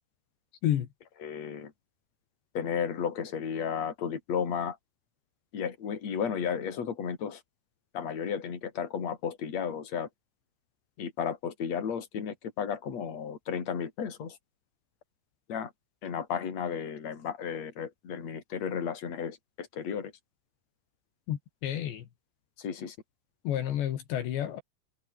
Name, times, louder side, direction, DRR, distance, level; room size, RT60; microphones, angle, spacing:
voice 1, 1.2-1.7 2.5-4.8 5.5-7.4 7.9-10.1 11.0-14.4 15.5-15.7 16.0-20.1 22.6-23.0, left 7 dB, 40° left, 4.4 m, -33 dB
voice 2, 21.3-22.1 23.5-24.6, left 11 dB, 70° left, 4.2 m, -30 dB
omnidirectional pair, 5.3 m